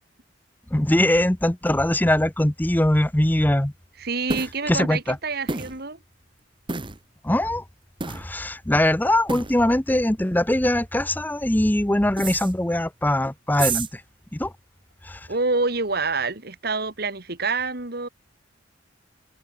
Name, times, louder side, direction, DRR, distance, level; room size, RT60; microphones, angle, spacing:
voice 1, 0.7-3.7 4.7-5.2 7.2-7.6 8.1-14.0 14.3-14.5 15.0-15.3, left 1 dB, 10° left, 0.8 m, -22 dB
voice 2, 4.0-6.0 15.3-18.1, right 3 dB, 55° right, 2.9 m, -27 dB
sound 1, 4.3-4.5 5.5-5.8 6.7-7.0 8.0-8.3 9.3-9.6 12.2-12.5 13.5-13.9, right 4 dB, 25° right, 1.5 m, -29 dB
head